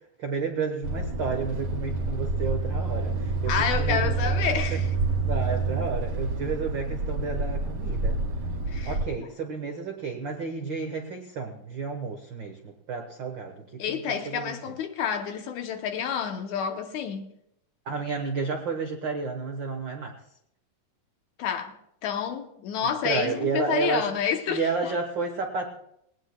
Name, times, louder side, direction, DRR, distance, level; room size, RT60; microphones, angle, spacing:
voice 1, 0.2-4.1 4.5-4.8 5.1-8.2 8.8-14.0 14.2-14.5 17.8-20.2 23.0-24.1 24.5-25.8, right 4 dB, 90° right, 1.0 m, -31 dB
sound 1, 0.8-9.1, right 3 dB, 50° right, 2.5 m, -28 dB
voice 2, 3.5-4.9 8.7-9.3 13.8-17.3 21.4-21.8 22.0-25.0, left 7 dB, 75° left, 1.9 m, -29 dB
20.0 x 17.5 x 2.2 m
omnidirectional pair, 3.9 m